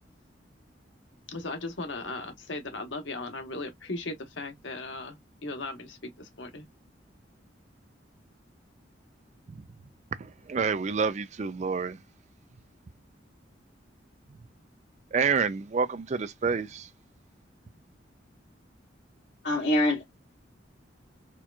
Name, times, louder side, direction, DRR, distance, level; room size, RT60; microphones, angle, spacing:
voice 1, 1.3-5.2 5.4-6.7, left 2 dB, 85° left, 1.0 m, -37 dB
voice 2, 10.1-12.0 15.1-16.9, right 5 dB, 40° right, 0.4 m, -28 dB
voice 3, 19.4-20.0, left 1 dB, 70° left, 1.9 m, -24 dB
4.4 x 2.3 x 2.3 m
head